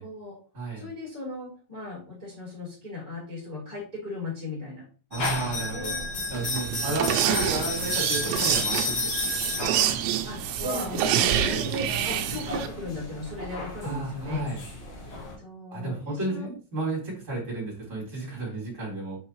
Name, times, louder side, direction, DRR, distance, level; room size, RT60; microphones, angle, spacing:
voice 1, 0.0-0.4 0.8-4.8 5.1-6.0 6.9-7.2 9.7-9.9 10.2-14.4 15.4-16.5, left 2 dB, 10° left, -5 dB, 3.4 m, -37 dB
voice 2, 0.5-0.9 5.1-5.9 6.3-10.0 13.8-14.6 15.7-19.2, right 2 dB, 15° right, -4 dB, 3.7 m, -33 dB
sound 1, 5.1-15.3, left 3 dB, 50° left, 2.3 m, -33 dB
sound 2, 6.3-12.7, right 11 dB, 90° right, 3.0 m, -27 dB
7.0 x 5.5 x 3.1 m, 0.37 s
omnidirectional pair, 5.1 m